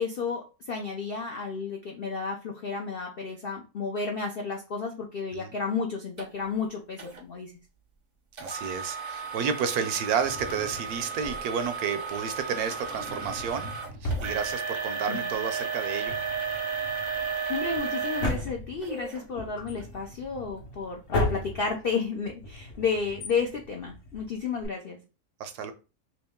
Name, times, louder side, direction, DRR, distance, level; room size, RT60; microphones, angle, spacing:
voice 1, 0.0-7.5 15.1-15.2 17.5-25.0, left 5 dB, 70° left, 2 dB, 0.5 m, -32 dB
sound 1, 6.2-6.3 7.0-7.2 8.4-19.2 19.8-19.9 20.5-20.6, right 5 dB, 40° right, 0.6 m, -34 dB
voice 2, 8.4-13.7 14.0-16.2 25.4-25.7, right 7 dB, 75° right, 9 dB, 1.0 m, -31 dB
Drawer open or close, 10.2-11.7 12.6-15.1 15.3-15.4 15.9-24.7, left 1 dB, 50° left, 1.0 m, -36 dB
3.1 x 3.0 x 3.5 m, 0.32 s
omnidirectional pair, 1.7 m